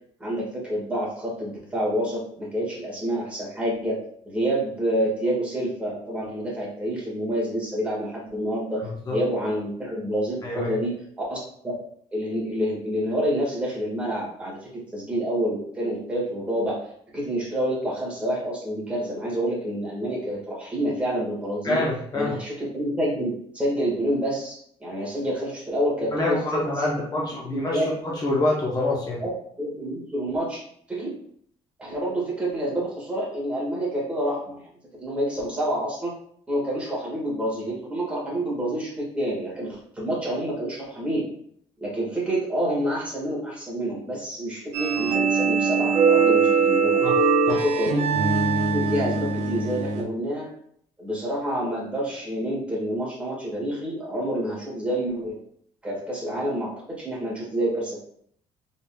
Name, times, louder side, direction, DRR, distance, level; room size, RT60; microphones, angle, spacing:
voice 1, 0.2-4.0 4.2-8.8 9.1-11.7 12.1-16.8 17.1-21.8 22.1-27.0 27.4-27.9 29.2-29.3 29.6-30.6 30.9-31.1 31.8-34.7 35.0-36.1 36.5-41.2 41.8-47.0 47.4-48.1 48.7-50.5 51.0-55.4 55.8-58.0, right 1 dB, 10° right, -5 dB, 1.6 m, -28 dB
voice 2, 10.4-10.7 21.6-22.4 26.1-29.2 47.0-47.1 47.5-47.6, left 2 dB, 35° left, -3 dB, 0.7 m, -26 dB
sound 1, 44.7-50.0, right 5 dB, 75° right, 0.8 m, -21 dB
3.9 x 3.7 x 2.2 m, 0.66 s
cardioid pair, 130°, 12 cm